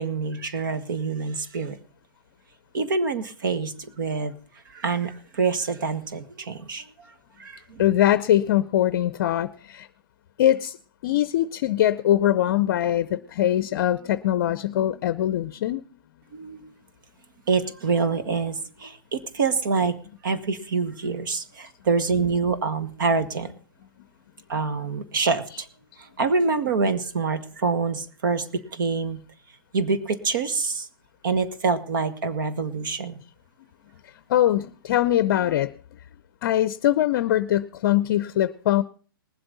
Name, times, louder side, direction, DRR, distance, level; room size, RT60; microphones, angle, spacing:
voice 1, 0.0-1.8 2.7-4.3 4.6-7.1 7.4-7.8 16.3-16.7 17.5-20.0 20.2-23.5 24.5-25.7 26.0-29.2 29.7-30.9 31.2-33.2, right 4 dB, 60° right, 15 dB, 1.7 m, -26 dB
voice 2, 7.8-9.9 10.4-10.8 11.0-15.8 34.0-35.7 36.4-38.8, left 12 dB, 45° left, 14 dB, 0.6 m, -22 dB
20.5 x 7.9 x 4.0 m, 0.41 s
hypercardioid pair, 145°, 12 cm